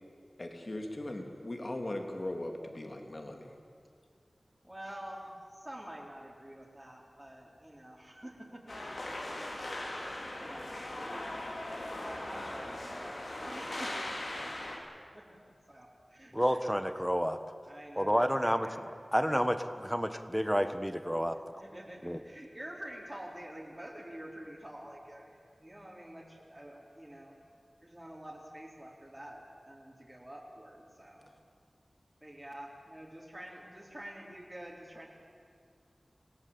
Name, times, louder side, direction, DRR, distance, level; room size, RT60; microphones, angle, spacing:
voice 1, 0.4-3.6, left 1 dB, 45° left, 3 dB, 3.1 m, -39 dB
voice 2, 4.6-8.8 9.3-9.6 9.8-11.4 12.0-15.4 15.7-16.3 17.7-18.8 21.3-27.3 27.8-31.3 32.2-35.1, right 1 dB, 20° right, -3 dB, 4.0 m, -48 dB
sound 1, 8.7-14.8, left 1 dB, 80° left, 4.5 m, -39 dB
voice 3, 16.3-17.4 18.0-18.7 19.1-21.4 22.0-22.2, equal, ahead, 9 dB, 1.5 m, -29 dB
27.5 x 17.5 x 8.7 m, 2.3 s
wide cardioid pair, 55°, 0 cm